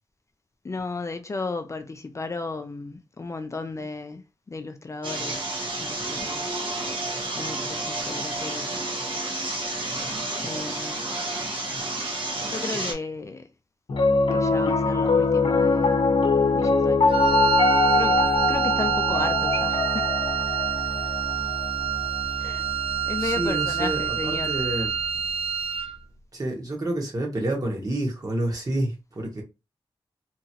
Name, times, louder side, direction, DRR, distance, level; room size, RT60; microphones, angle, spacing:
voice 1, 0.6-5.5 5.8-6.5 7.3-8.7 10.4-11.2 12.4-13.5 14.3-16.0 16.5-17.2 17.9-20.1 22.4-22.6 23.1-24.5, left 3 dB, 35° left, 0.3 m, -34 dB
sound 1, 5.0-12.9, right 2 dB, 65° right, 0.9 m, -30 dB
Piano, 13.9-24.3, left 3 dB, 75° left, 0.6 m, -23 dB
Wind instrument woodwind instrument, 17.1-26.0, right 10 dB, 80° right, 0.4 m, -27 dB
voice 2, 23.2-24.9 26.3-29.4, right 1 dB, 40° right, 1.1 m, -29 dB
2.9 x 2.5 x 2.8 m
wide cardioid pair, 100°, 9 cm